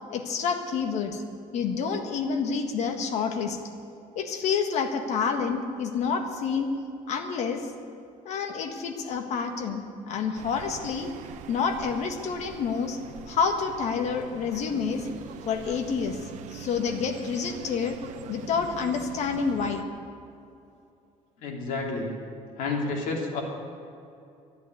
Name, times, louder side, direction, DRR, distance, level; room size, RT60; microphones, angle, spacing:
voice 1, 0.1-1.2 1.5-3.6 4.1-6.7 7.1-7.7 8.2-11.1 11.5-13.0 13.3-15.1 15.4-18.0 18.3-19.8, left 5 dB, 55° left, 6 dB, 1.7 m, -28 dB
sound 1, 10.3-19.8, right 8 dB, 65° right, 0.9 m, -43 dB
voice 2, 21.4-22.1 22.6-23.4, left 3 dB, 80° left, 0 dB, 3.1 m, -30 dB
12.5 x 10.5 x 9.8 m, 2.6 s
cardioid pair, 150°, 13 cm